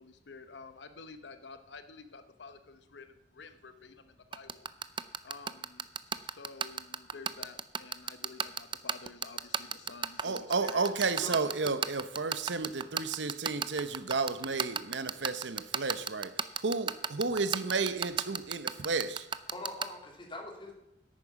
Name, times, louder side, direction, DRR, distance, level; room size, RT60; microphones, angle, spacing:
voice 1, 0.0-4.7 5.2-5.9 6.2-10.9, left 4 dB, 70° left, 0.8 m, -50 dB
sound 1, 4.3-19.8, right 7 dB, 30° right, 0.5 m, -31 dB
voice 2, 10.2-19.3, right 4 dB, 80° right, 0.9 m, -32 dB
voice 3, 11.2-11.7 19.5-20.7, left 2 dB, 30° left, 2.8 m, -42 dB
10.5 x 8.9 x 5.9 m
head